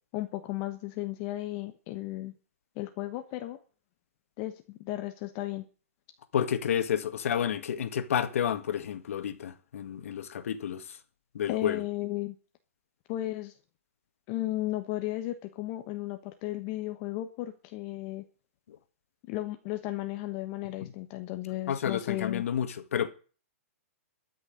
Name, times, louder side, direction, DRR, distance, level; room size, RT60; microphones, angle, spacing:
voice 1, 0.1-2.3 2.8-3.6 4.4-5.6 11.5-12.3 13.1-13.5 14.3-18.2 19.3-22.4, left 16 dB, 30° left, 1.2 m, -34 dB
voice 2, 6.3-11.0 11.3-11.8 18.7-18.8 21.7-23.1, left 9 dB, 65° left, 2.0 m, -30 dB
13.5 x 6.4 x 9.5 m
hypercardioid pair, 160°, 8 cm